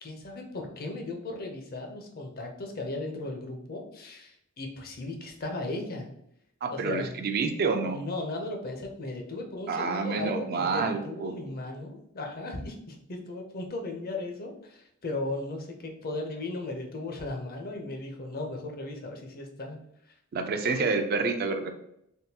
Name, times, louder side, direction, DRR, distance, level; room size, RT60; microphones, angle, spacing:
voice 1, 0.0-6.1 6.7-7.2 7.8-19.8, left 2 dB, 50° left, 2 dB, 0.6 m, -36 dB
voice 2, 6.6-8.0 9.7-11.3 20.3-21.7, right 4 dB, 50° right, 6 dB, 0.4 m, -28 dB
3.5 x 2.3 x 2.7 m, 0.76 s
head